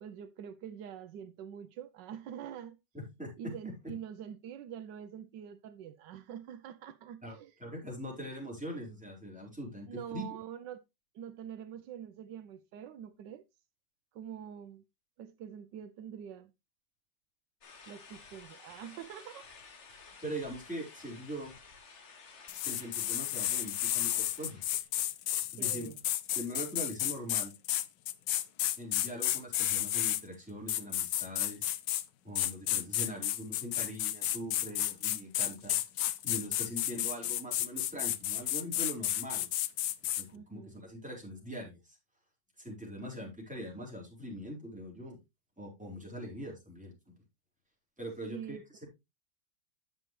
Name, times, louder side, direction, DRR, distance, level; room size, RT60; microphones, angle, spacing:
voice 1, 0.0-2.8 3.4-7.5 8.1-8.2 9.9-10.8 11.1-13.4 14.1-14.8 15.2-16.5 17.9-19.5 25.6-26.0 40.3-40.7 48.3-48.6, right 9 dB, 80° right, 1.3 m, -45 dB
voice 2, 2.9-3.3 7.2-9.9 10.1-10.2 20.2-21.5 22.6-24.6 25.5-25.9 26.3-27.5 28.8-31.7 32.2-35.8 36.2-39.5 40.0-42.0 42.6-45.2 45.6-47.1 48.0-48.9, equal, 5° right, 4.3 m, -42 dB
sound 1, 17.6-24.8, left 5 dB, 45° left, 1.4 m, -53 dB
sound 2, 22.5-30.2 30.7-32.0 32.3-40.2, left 13 dB, 80° left, 1.3 m, -32 dB
9.7 x 7.4 x 3.1 m
omnidirectional pair, 1.9 m